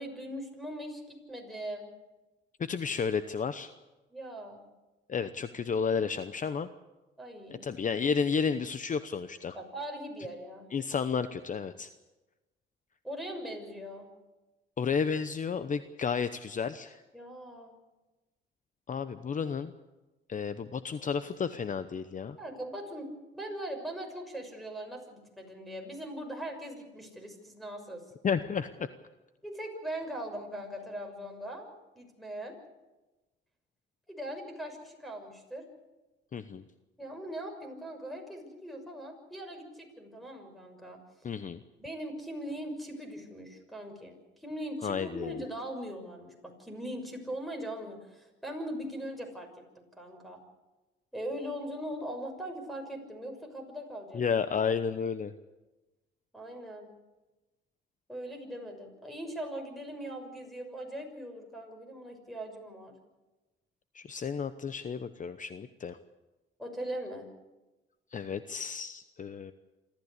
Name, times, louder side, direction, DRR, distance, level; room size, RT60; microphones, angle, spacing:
voice 1, 0.0-1.9 4.1-4.6 7.2-7.7 9.5-10.7 13.0-14.1 17.1-17.8 22.4-28.0 29.4-32.6 34.1-35.7 37.0-41.0 41.8-50.4 51.1-54.5 56.3-56.9 58.1-63.0 66.6-67.3, right 1 dB, ahead, 4 dB, 6.3 m, -40 dB
voice 2, 2.6-3.7 5.1-6.7 7.6-9.6 10.7-11.9 14.8-17.0 18.9-19.7 20.3-22.4 28.2-28.9 36.3-36.6 41.2-41.6 44.8-45.3 54.1-55.3 63.9-66.0 68.1-69.5, left 6 dB, 40° left, 12 dB, 0.9 m, -32 dB
27.0 x 14.0 x 8.3 m, 1.1 s
cardioid pair, 90°, 20 cm